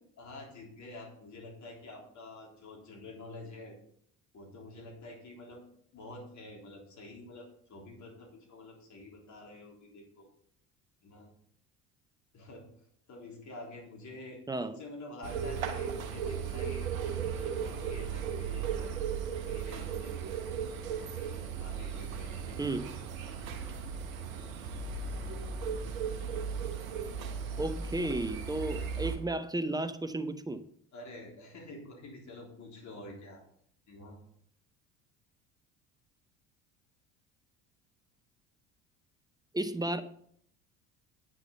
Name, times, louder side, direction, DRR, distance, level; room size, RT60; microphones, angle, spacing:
voice 1, 0.2-3.8 4.3-5.6 5.9-10.3 11.0-11.3 12.3-12.7 13.1-16.9 17.2-18.9 19.4-20.3 21.0-22.9 30.9-33.4 33.9-34.2, left 2 dB, 45° left, -1 dB, 3.5 m, -48 dB
sound 1, 15.2-29.2, right 7 dB, 80° right, 1.2 m, -36 dB
voice 2, 22.6-22.9 27.6-30.6 39.5-40.0, right 2 dB, 10° right, 12 dB, 0.7 m, -33 dB
9.4 x 6.3 x 5.5 m, 0.66 s
hypercardioid pair, 65°, 41 cm